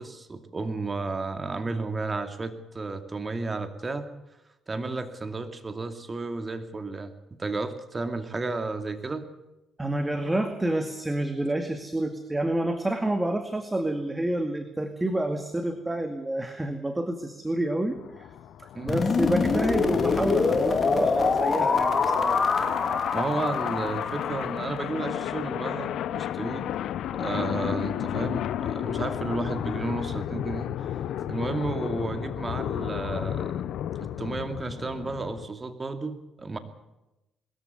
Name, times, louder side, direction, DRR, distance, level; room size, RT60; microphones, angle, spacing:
voice 1, 0.0-4.1 4.7-7.1 7.4-9.3 18.7-19.0 23.1-26.6 27.1-30.9 31.3-33.6 34.0-36.6, right 3 dB, 30° right, 8 dB, 2.4 m, -32 dB
voice 2, 9.8-18.3 18.6-22.5, right 1 dB, 15° right, 7 dB, 2.2 m, -28 dB
sound 1, 17.9-35.4, left 11 dB, 70° left, 0.8 m, -33 dB
sound 2, 18.9-24.8, left 4 dB, 45° left, 2.4 m, -25 dB
21.5 x 14.0 x 9.6 m, 0.97 s
hypercardioid pair, 50°, 0 cm